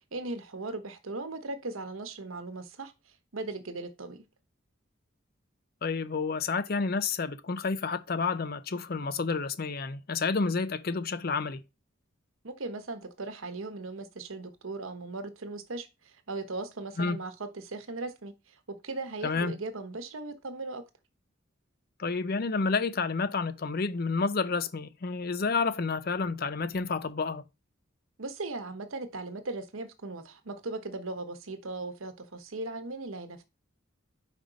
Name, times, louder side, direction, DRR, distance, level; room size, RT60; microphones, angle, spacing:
voice 1, 0.1-4.2 12.4-20.8 28.2-33.4, right 3 dB, 80° right, 1.0 m, -38 dB
voice 2, 5.8-11.6 17.0-17.2 19.2-19.5 22.0-27.4, left 4 dB, 45° left, 0.5 m, -30 dB
5.3 x 5.1 x 3.9 m
head